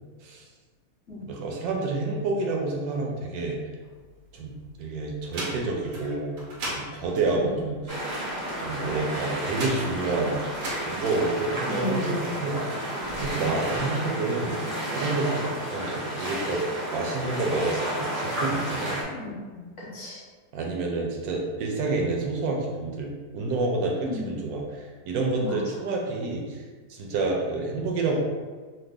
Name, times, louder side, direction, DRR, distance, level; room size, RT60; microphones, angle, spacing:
voice 1, 1.2-3.6 4.3-4.5 4.8-6.4 6.7-8.0 8.6-10.4 10.8-12.9 13.2-14.6 15.0-16.6 16.9-19.0 20.5-28.2, right 3 dB, 70° right, 0 dB, 1.0 m, -29 dB
sound 1, 3.8-4.7 5.1-12.2 12.9-13.9, right 1 dB, 90° right, 1.3 m, -38 dB
sound 2, 7.9-19.0, right 1 dB, 25° right, 0.4 m, -31 dB
voice 2, 11.6-12.4 19.1-20.2 24.0-24.3 25.4-25.5, left 2 dB, 55° left, -5 dB, 1.1 m, -34 dB
3.2 x 2.1 x 3.4 m, 1.4 s
omnidirectional pair, 1.7 m